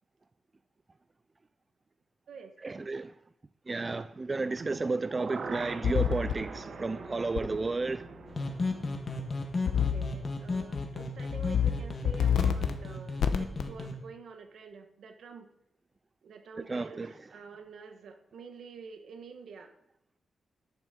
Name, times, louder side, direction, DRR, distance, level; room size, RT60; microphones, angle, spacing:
voice 1, 2.6-3.1 3.7-8.0 16.7-17.1, right 3 dB, 25° right, 0.3 m, -32 dB
sound 1, 4.5-10.6 10.9-11.0, right 4 dB, 50° right, 1.0 m, -43 dB
sound 2, 5.8-6.3 7.4-7.5 9.7-10.1 10.5-10.8 11.3-11.7 12.0-12.7 13.2-13.6, left 8 dB, 85° left, 0.8 m, -27 dB
sound 3, 8.3-13.9, left 3 dB, 35° left, 1.6 m, -35 dB
voice 2, 9.7-15.5 16.2-19.7, right 5 dB, 70° right, 1.3 m, -48 dB
10.5 x 7.0 x 5.1 m
cardioid pair, 115°, 0 cm